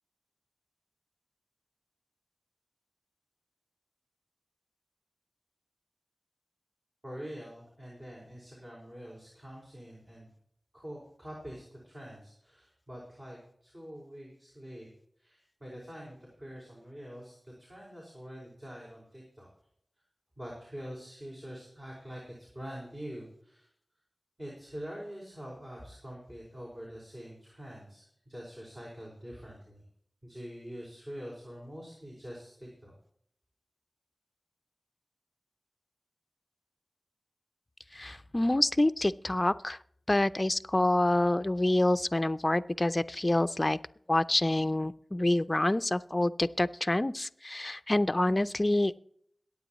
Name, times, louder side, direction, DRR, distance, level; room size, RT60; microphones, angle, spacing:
voice 1, 7.0-10.3 10.7-14.9 15.2-19.5 20.4-23.7 24.4-29.8 30.2-32.9, equal, 35° right, -5 dB, 5.5 m, -45 dB
voice 2, 37.9-39.8 40.1-43.8 44.1-49.0, left 1 dB, 35° left, 12 dB, 0.5 m, -27 dB
22.5 x 9.4 x 3.1 m, 0.66 s
cardioid pair, 40°, 0 cm